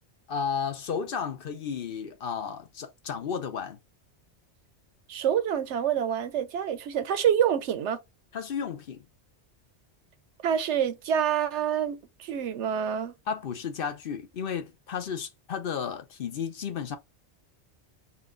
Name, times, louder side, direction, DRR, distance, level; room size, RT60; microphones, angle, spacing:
voice 1, 0.3-3.8 8.3-9.0 13.3-17.0, left 6 dB, 55° left, 0.8 m, -33 dB
voice 2, 5.1-8.0 10.4-13.1, right 9 dB, 85° right, 1.0 m, -27 dB
4.2 x 2.3 x 3.8 m
omnidirectional pair, 1.2 m